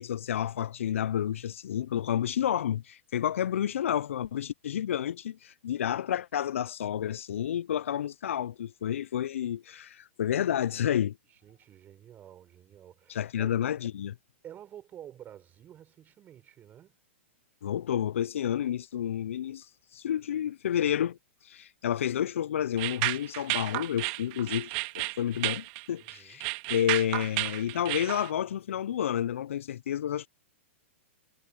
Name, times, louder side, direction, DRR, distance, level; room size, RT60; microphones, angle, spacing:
voice 1, 0.0-11.2 13.1-14.2 17.6-19.7 19.9-21.2 21.4-24.7 24.9-30.3, left 10 dB, 75° left, 0.4 m, -30 dB
voice 2, 11.3-13.5 14.4-16.9 26.0-26.4, right 10 dB, 25° right, 6.6 m, -50 dB
sound 1, 22.8-28.3, right 26 dB, 45° right, 1.7 m, -32 dB
hypercardioid pair, 125°, 7 cm